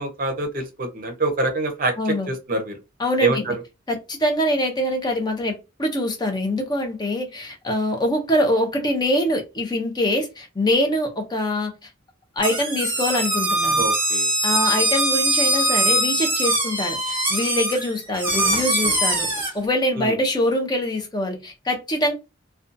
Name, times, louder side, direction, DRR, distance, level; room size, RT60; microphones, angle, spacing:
voice 1, 0.0-2.8 3.2-3.5 13.8-14.3 20.0-20.1, right 2 dB, 45° right, 0.6 m, -25 dB
voice 2, 2.0-2.3 3.0-3.4 3.9-11.7 12.4-13.8 14.4-19.3 19.5-22.1, left 1 dB, 20° left, 0.5 m, -24 dB
sound 1, 12.4-19.5, right 1 dB, 10° right, 0.8 m, -22 dB
2.6 x 2.2 x 2.5 m
head